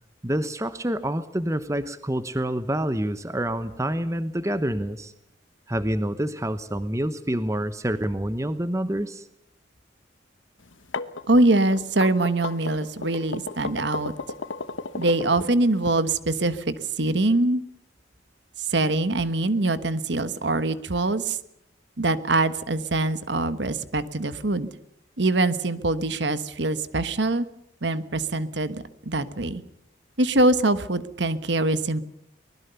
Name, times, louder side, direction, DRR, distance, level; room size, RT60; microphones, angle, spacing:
voice 1, 0.2-5.1 5.7-9.2, right 1 dB, 15° right, 12 dB, 1.0 m, -27 dB
sound 1, 10.7-15.9, left 3 dB, 80° left, 1.2 m, -34 dB
voice 2, 11.3-14.1 14.9-17.6 18.7-21.4 22.0-24.7 25.2-27.4 27.8-29.6 30.2-32.0, right 2 dB, 60° right, 12 dB, 1.3 m, -23 dB
24.5 x 20.0 x 7.0 m, 0.77 s
head